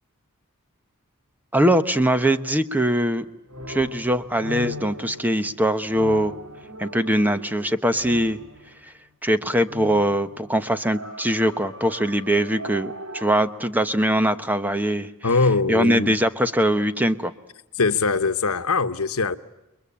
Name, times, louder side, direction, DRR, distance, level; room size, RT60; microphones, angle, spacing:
voice 1, 1.5-3.3 3.7-6.3 6.8-8.4 9.2-15.1 15.7-17.3, right 1 dB, 10° right, 1.0 m, -22 dB
sound 1, 3.2-8.9 9.6-13.3, left 1 dB, 70° right, 3.7 m, -39 dB
voice 2, 15.2-16.1 17.7-19.4, left 4 dB, 70° left, 1.2 m, -22 dB
29.5 x 22.5 x 8.7 m
head